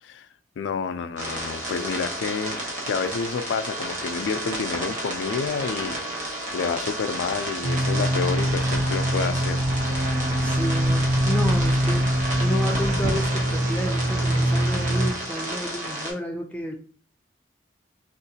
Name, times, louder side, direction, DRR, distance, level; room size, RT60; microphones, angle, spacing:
voice 1, 0.6-9.7, left 5 dB, 90° left, 0.3 m, -29 dB
sound 1, 1.2-16.1, right 1 dB, 45° right, 0.9 m, -32 dB
sound 2, 5.5-10.6, right 3 dB, 80° right, 1.6 m, -49 dB
sound 3, 7.6-15.1, right 1 dB, 65° right, 0.5 m, -23 dB
voice 2, 10.4-16.7, equal, 10° left, 0.4 m, -31 dB
3.6 x 2.4 x 2.7 m
head